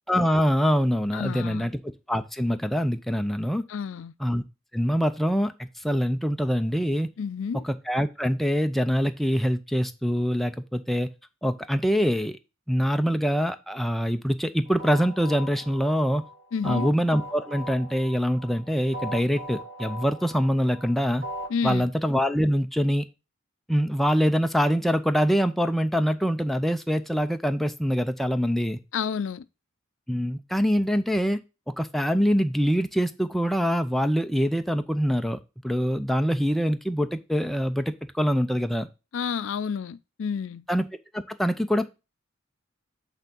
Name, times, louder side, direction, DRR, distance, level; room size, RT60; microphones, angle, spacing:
voice 1, 0.1-1.7 2.1-3.6 4.2-4.4 4.7-5.5 5.8-7.1 7.6-11.1 11.4-12.4 12.7-16.2 16.6-21.3 21.6-23.1 23.7-28.8 30.1-31.4 31.7-38.9 40.7-40.8 41.1-41.9, equal, ahead, 0.4 m, -24 dB
voice 2, 1.1-1.7 3.7-4.1 7.2-7.6 16.5-16.9 21.5-21.9 28.9-29.4 39.1-40.7, left 6 dB, 70° left, 0.4 m, -30 dB
sound 1, 14.6-21.7, equal, 50° right, 2.1 m, -39 dB
8.2 x 3.5 x 5.2 m
head